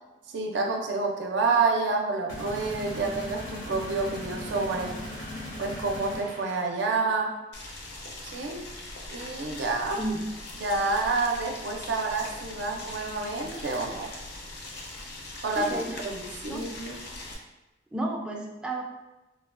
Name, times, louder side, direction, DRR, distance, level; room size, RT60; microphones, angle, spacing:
voice 1, 0.3-5.0 5.6-7.3 8.2-8.6 9.1-10.0 10.6-14.1 15.4-17.0, right 3 dB, 80° right, 2 dB, 0.4 m, -28 dB
sound 1, 2.3-7.0, left 1 dB, 90° left, 1.0 m, -38 dB
Boiling, 7.5-17.3, left 2 dB, 65° left, 0.5 m, -41 dB
voice 2, 15.6-16.0 16.5-16.6 17.9-18.8, right 2 dB, 5° right, -2 dB, 0.3 m, -32 dB
3.2 x 2.2 x 2.4 m, 1.1 s
head